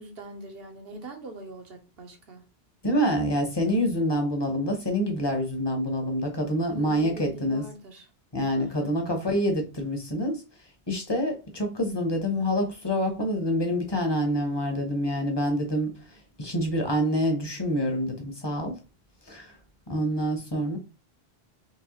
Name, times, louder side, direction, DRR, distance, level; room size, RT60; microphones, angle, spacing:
voice 1, 0.0-2.4 6.7-8.1 8.6-8.9, right 1 dB, 65° right, 1.2 m, -42 dB
voice 2, 2.8-7.6 8.3-10.4 10.9-15.9 16.4-18.7 19.3-19.5 19.9-20.8, equal, 25° left, 0.9 m, -26 dB
4.7 x 3.1 x 3.0 m
omnidirectional pair, 1.1 m